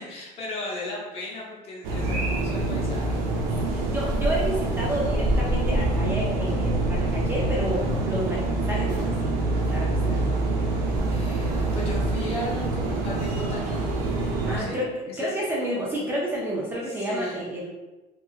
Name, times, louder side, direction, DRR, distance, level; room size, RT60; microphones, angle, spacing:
voice 1, 0.0-3.3 11.1-13.7 14.6-14.8 15.1-15.3 16.9-17.5, left 2 dB, 40° left, -4 dB, 0.8 m, -36 dB
sound 1, 1.8-14.6, right 2 dB, 85° right, 0.5 m, -25 dB
voice 2, 3.6-9.3 9.6-10.2 14.5-14.9 15.2-17.7, right 1 dB, 15° right, -5 dB, 0.3 m, -30 dB
2.7 x 2.3 x 2.3 m, 1.1 s
cardioid pair, 160°, 15 cm